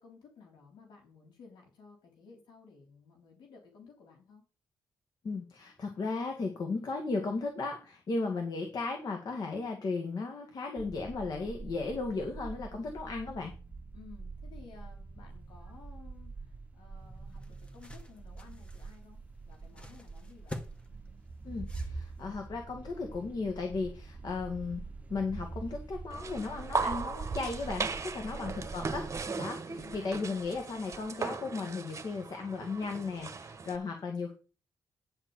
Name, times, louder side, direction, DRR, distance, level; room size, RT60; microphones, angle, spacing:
voice 1, 0.0-4.4 13.9-19.2 19.5-20.6 29.6-30.1, left 5 dB, 85° left, 1 dB, 3.5 m, -56 dB
voice 2, 5.2-13.5 21.4-24.8 25.1-29.1 29.4-34.3, left 3 dB, 60° left, 3 dB, 2.2 m, -35 dB
sound 1, 10.8-29.3, right 3 dB, 20° right, 1.3 m, -45 dB
sound 2, 17.0-22.4, left 1 dB, 15° left, 1.9 m, -48 dB
sound 3, 26.1-33.8, right 4 dB, 40° right, 1.3 m, -37 dB
10.5 x 4.5 x 7.9 m, 0.35 s
cardioid pair, 65°, 8 cm